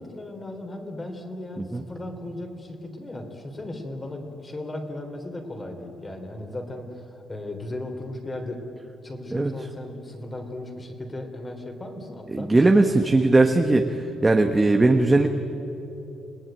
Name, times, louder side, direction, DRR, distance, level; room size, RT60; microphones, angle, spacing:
voice 1, 0.0-8.6 9.0-12.8, left 1 dB, 20° left, 5 dB, 3.4 m, -36 dB
voice 2, 12.3-15.3, right 2 dB, 15° right, 4 dB, 1.2 m, -19 dB
29.5 x 19.5 x 9.1 m, 3.0 s
cardioid pair, 140°, 0 cm